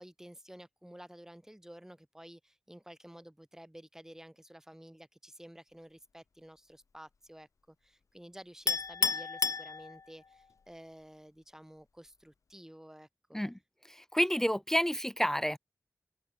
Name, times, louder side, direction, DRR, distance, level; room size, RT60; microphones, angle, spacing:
voice 1, 0.0-13.4, equal, 10° right, 5.3 m, -52 dB
Chink clink, 8.7-10.3, left 5 dB, 80° left, 0.6 m, -31 dB
voice 2, 13.9-15.6, equal, 10° left, 0.4 m, -29 dB
open air
wide cardioid pair, 75°, 5 cm